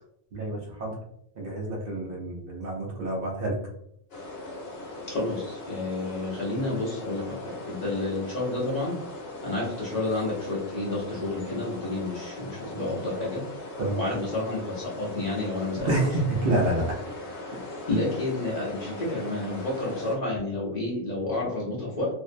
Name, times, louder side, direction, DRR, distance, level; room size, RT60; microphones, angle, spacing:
voice 1, 0.3-1.0 1.4-3.6 13.8-14.0 15.8-17.0, right 2 dB, 60° right, -1 dB, 0.7 m, -28 dB
sound 1, 4.1-20.2, left 2 dB, 70° left, 0.9 m, -39 dB
voice 2, 5.1-7.4 7.6-9.0 9.4-13.4 14.0-15.9 17.9-22.1, left 2 dB, 45° left, -5 dB, 0.7 m, -30 dB
2.5 x 2.0 x 2.4 m, 0.71 s
omnidirectional pair, 1.1 m